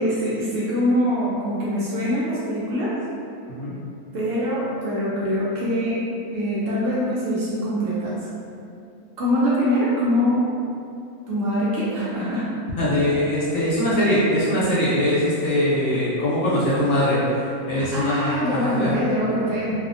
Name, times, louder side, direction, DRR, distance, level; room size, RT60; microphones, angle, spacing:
voice 1, 0.0-2.9 4.1-6.0 6.3-8.2 9.2-10.5 11.3-12.5 17.7-19.7, equal, 70° right, -8 dB, 0.8 m, -23 dB
voice 2, 12.8-18.9, left 1 dB, 70° left, -9 dB, 1.1 m, -22 dB
2.7 x 2.1 x 2.5 m, 2.5 s
omnidirectional pair, 1.6 m